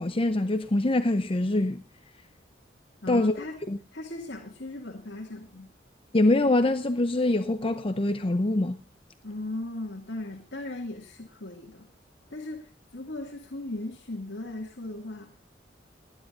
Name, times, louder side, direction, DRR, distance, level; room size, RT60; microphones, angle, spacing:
voice 1, 0.0-1.8 3.1-3.3 3.7-3.8 6.1-8.8, left 2 dB, 30° left, 0.7 m, -24 dB
voice 2, 3.0-3.6 3.9-5.7 9.2-11.9 12.3-15.3, left 2 dB, 70° left, 2.2 m, -37 dB
30.0 x 10.5 x 2.6 m
head